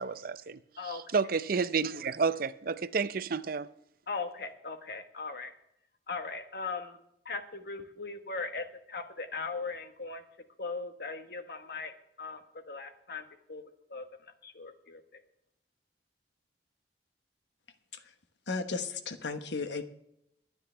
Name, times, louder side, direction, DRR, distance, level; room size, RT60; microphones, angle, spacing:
voice 1, 0.0-3.7, right 5 dB, 55° right, 0.5 m, -31 dB
voice 2, 4.1-5.5 6.1-7.0 7.2-10.2 10.6-11.9 12.2-13.6 13.9-14.0 14.4-15.0, left 4 dB, 60° left, 1.4 m, -39 dB
voice 3, 18.5-19.8, left 4 dB, 90° left, 1.2 m, -35 dB
22.5 x 9.7 x 3.4 m
head